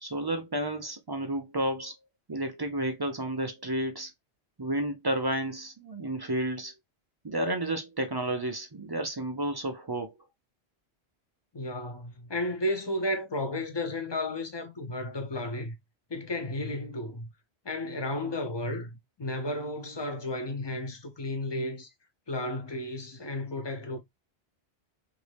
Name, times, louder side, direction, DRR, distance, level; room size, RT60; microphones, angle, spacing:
voice 1, 0.0-1.9 2.3-4.1 4.6-6.7 7.2-10.2, right 1 dB, 40° right, 0.3 m, -31 dB
voice 2, 11.5-15.8 16.1-17.3 17.6-21.9 22.3-24.0, left 1 dB, 35° left, 0.5 m, -33 dB
3.0 x 2.6 x 3.2 m
omnidirectional pair, 1.1 m